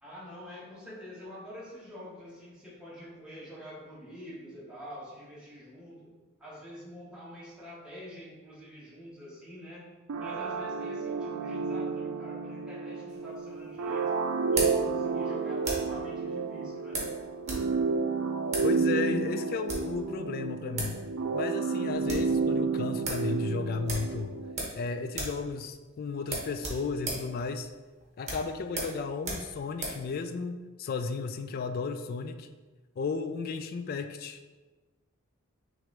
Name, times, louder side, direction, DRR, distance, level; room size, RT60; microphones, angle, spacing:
voice 1, 0.0-6.1 6.4-9.9 10.2-14.1 14.5-17.0, equal, 5° right, -8 dB, 1.3 m, -46 dB
sound 1, 10.1-24.6, right 4 dB, 75° right, 0.4 m, -31 dB
sound 2, 13.1-16.0 16.9-17.7 17.9-18.0 18.5-18.7 19.5-20.0 20.5-20.6 20.8-21.0 21.3-21.4 21.7-22.3 22.7-22.8 23.0-23.3 23.8-24.8 25.1-25.4 25.7-25.8 26.2-30.0, right 2 dB, 35° right, 1.1 m, -36 dB
voice 2, 18.6-21.0 21.3-24.4 24.7-27.7 28.2-32.5 33.0-34.4, left 4 dB, 45° left, 9 dB, 0.3 m, -34 dB
6.0 x 2.6 x 3.3 m, 1.2 s
head